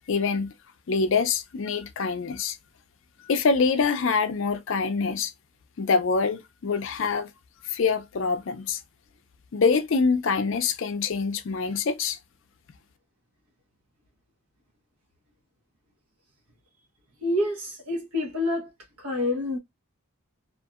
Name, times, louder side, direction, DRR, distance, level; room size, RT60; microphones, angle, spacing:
voice 1, 0.1-0.5 0.9-2.6 3.3-5.3 5.8-7.3 7.7-8.8 9.5-12.2, left 5 dB, 55° left, 0.4 m, -25 dB
voice 2, 17.2-18.7 19.0-19.6, left 1 dB, 80° right, 1.0 m, -27 dB
2.7 x 2.4 x 2.3 m
head